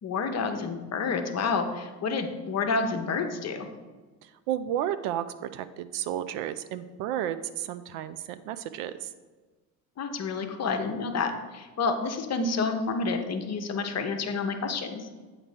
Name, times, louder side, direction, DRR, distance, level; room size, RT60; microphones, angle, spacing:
voice 1, 0.0-3.7 10.0-15.0, left 4 dB, 30° left, 6 dB, 0.9 m, -29 dB
voice 2, 4.2-9.1, right 11 dB, 55° right, 13 dB, 0.5 m, -32 dB
8.5 x 3.3 x 4.9 m, 1.3 s
figure-of-eight pair, 60°, 49 cm